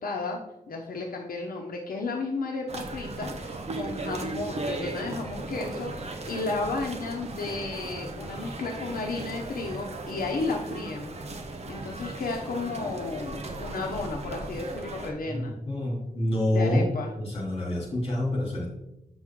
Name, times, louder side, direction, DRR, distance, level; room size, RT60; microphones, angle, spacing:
voice 1, 0.0-11.1 11.7-15.5 16.5-17.1, left 3 dB, 85° left, 0 dB, 0.9 m, -33 dB
sound 1, 2.7-15.1, right 2 dB, 50° right, 1.0 m, -37 dB
voice 2, 15.3-16.9 17.2-18.7, left 1 dB, 40° left, -3 dB, 3.0 m, -27 dB
8.0 x 6.1 x 3.7 m, 0.87 s
wide cardioid pair, 175°, 14 cm